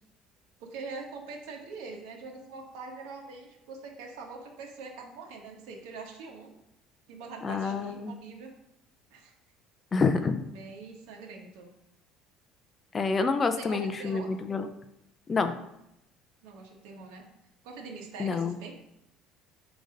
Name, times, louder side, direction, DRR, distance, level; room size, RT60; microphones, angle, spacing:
voice 1, 0.6-6.5 7.1-8.5 9.1-9.3 10.4-11.7 13.6-14.3 16.4-17.3 17.6-18.7, right 4 dB, 85° right, 1 dB, 1.5 m, -43 dB
voice 2, 7.4-8.2 9.9-10.4 12.9-14.7 15.3-15.5 18.2-18.6, left 4 dB, 25° left, 9 dB, 0.4 m, -27 dB
6.7 x 3.9 x 5.1 m, 0.80 s
cardioid pair, 140°, 0 cm